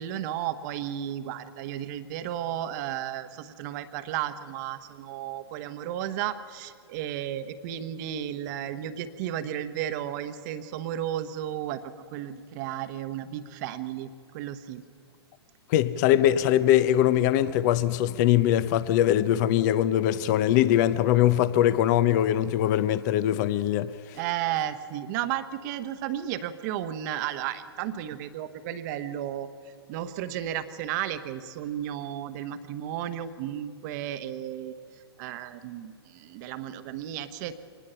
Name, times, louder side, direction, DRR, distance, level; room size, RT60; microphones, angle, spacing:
voice 1, 0.0-11.8 12.1-14.8 24.1-34.8 35.2-37.6, right 11 dB, 40° right, 1.1 m, -33 dB
voice 2, 15.7-24.2, left 12 dB, 40° left, 0.8 m, -22 dB
24.5 x 19.5 x 5.7 m
hypercardioid pair, 120°, 14 cm